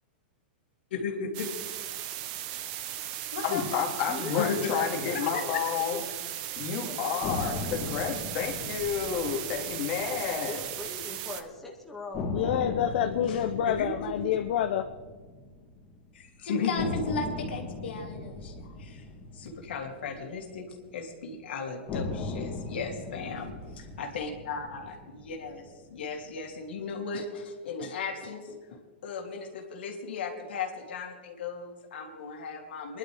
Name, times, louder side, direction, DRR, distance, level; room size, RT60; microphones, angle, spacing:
voice 1, 0.9-1.5 3.3-3.7 4.2-4.7 5.1-5.5 13.6-14.2 16.1-19.1 19.3-33.0, left 4 dB, 80° left, 1 dB, 2.8 m, -36 dB
sound 1, 1.3-11.4, right 12 dB, 45° right, 0.9 m, -37 dB
voice 2, 3.4-6.0 6.6-10.6, left 7 dB, 40° left, 0 dB, 2.8 m, -30 dB
voice 3, 4.1-5.5 5.8-6.1 6.8-7.2 10.0-12.7, left 2 dB, 5° left, -3 dB, 1.9 m, -41 dB
sound 2, 7.2-11.3 11.6-11.7 12.1-16.2 16.8-21.1 21.9-26.2, left 3 dB, 25° left, 2.8 m, -39 dB
voice 4, 12.3-14.9, left 9 dB, 65° left, 6 dB, 0.8 m, -27 dB
23.0 x 11.5 x 3.5 m, 1.4 s
hypercardioid pair, 145°, 6 cm